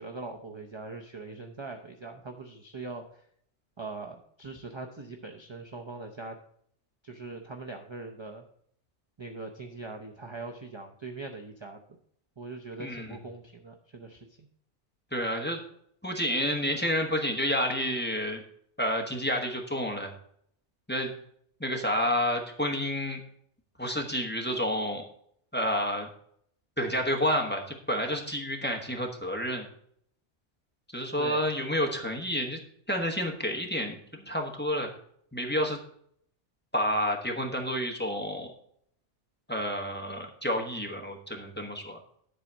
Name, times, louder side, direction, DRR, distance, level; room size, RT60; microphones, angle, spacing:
voice 1, 0.0-3.2 3.8-6.4 7.0-8.5 9.2-11.8 12.4-14.5 31.2-31.5, right 3 dB, 30° right, 3 dB, 0.6 m, -41 dB
voice 2, 15.1-15.6 16.0-18.4 18.8-20.1 20.9-21.1 21.6-23.2 23.8-25.0 25.5-26.1 26.8-29.7 30.9-32.6 32.9-34.9 35.3-35.8 36.7-38.5 39.5-42.0, equal, 10° left, 2 dB, 1.2 m, -29 dB
10.5 x 4.1 x 6.1 m, 0.66 s
omnidirectional pair, 1.2 m